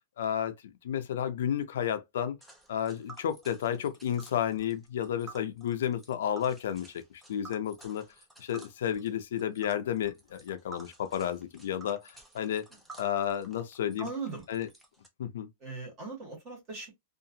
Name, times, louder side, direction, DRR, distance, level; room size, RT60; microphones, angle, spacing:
voice 1, 0.2-0.5 0.8-2.4 2.7-6.9 7.3-8.1 8.4-12.7 13.0-14.1 14.5-14.7 15.2-15.5, left 9 dB, 85° left, 0.5 m, -31 dB
Tick, 2.4-15.1, right 3 dB, 5° right, 0.5 m, -53 dB
voice 2, 14.0-14.4 15.6-16.9, right 4 dB, 25° right, 1.5 m, -39 dB
2.8 x 2.4 x 2.6 m
supercardioid pair, 175°, 0 cm